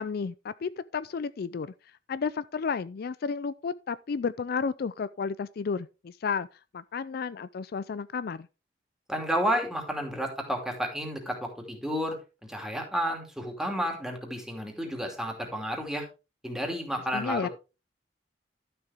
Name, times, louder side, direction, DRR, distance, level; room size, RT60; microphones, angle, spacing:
voice 1, 0.0-1.7 2.1-6.5 6.7-8.5 17.1-17.5, left 5 dB, 60° left, 0.4 m, -32 dB
voice 2, 9.1-12.2 12.4-16.1 16.4-17.5, equal, 5° right, 2.7 m, -31 dB
12.0 x 6.9 x 3.5 m
head